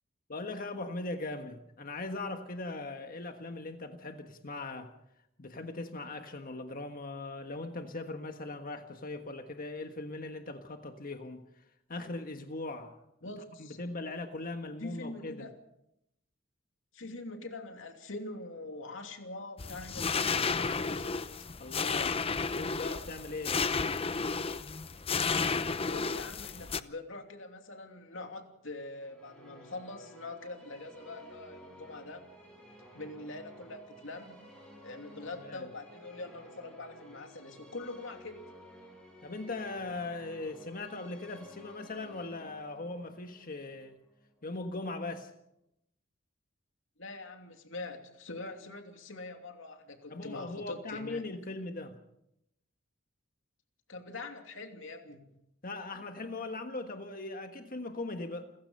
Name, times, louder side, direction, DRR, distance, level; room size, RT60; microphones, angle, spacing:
voice 1, 0.3-4.9 5.4-11.6 11.9-13.0 13.6-15.5 21.6-22.2 22.5-23.7 35.4-35.7 39.2-44.0 44.4-45.3 50.1-52.0 55.6-58.5, left 2 dB, 45° left, 1.5 m, -39 dB
voice 2, 13.2-13.8 14.8-15.5 16.9-21.3 25.9-32.3 32.9-34.5 34.8-38.4 47.0-51.2 53.9-55.3, left 2 dB, 70° left, 2.9 m, -44 dB
sound 1, 19.6-26.8, left 5 dB, 30° left, 0.7 m, -32 dB
sound 2, 28.8-44.9, equal, 5° left, 7.9 m, -54 dB
29.5 x 16.0 x 5.6 m
head